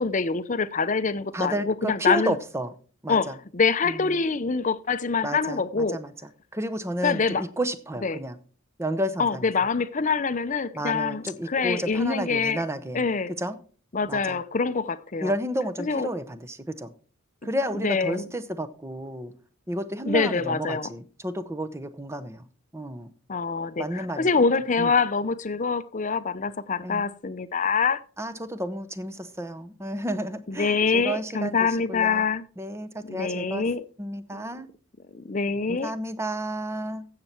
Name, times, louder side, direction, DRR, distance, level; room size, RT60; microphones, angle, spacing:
voice 1, 0.0-2.3 3.1-6.0 7.0-7.4 8.0-8.2 9.2-12.6 12.9-13.3 13.9-15.3 15.8-16.1 17.8-18.3 20.1-20.9 23.3-28.0 30.5-32.4 33.0-33.8 34.3-34.4 35.1-35.9, left 4 dB, 35° left, 0.6 m, -25 dB
voice 2, 1.3-2.7 3.0-3.4 3.8-4.1 5.2-6.1 6.5-8.4 8.8-9.5 10.7-13.0 13.4-13.6 14.1-14.4 15.2-16.9 17.4-19.3 19.7-22.4 22.7-23.1 23.8-24.3 24.8-24.9 26.8-27.0 28.2-32.3 32.6-33.7 34.0-34.7 35.7-37.1, right 1 dB, 15° right, 0.7 m, -31 dB
15.5 x 6.7 x 4.4 m
head